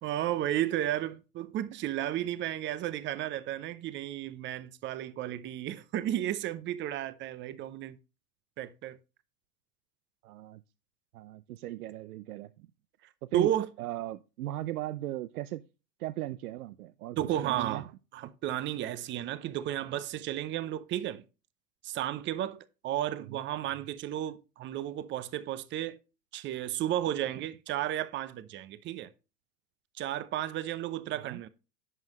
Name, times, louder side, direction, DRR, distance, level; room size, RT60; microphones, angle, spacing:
voice 1, 0.0-8.0 8.6-9.0 13.3-13.7 17.2-21.2 21.8-26.0 26.3-29.1 30.0-31.5, right 12 dB, 25° right, 0.7 m, -33 dB
voice 2, 10.2-10.6 11.1-12.5 13.3-13.5 13.8-15.6 16.0-17.2 17.4-17.8 23.3-23.4 31.1-31.4, right 15 dB, 65° right, 0.6 m, -37 dB
11.0 x 7.2 x 3.1 m
hypercardioid pair, 95°, 48 cm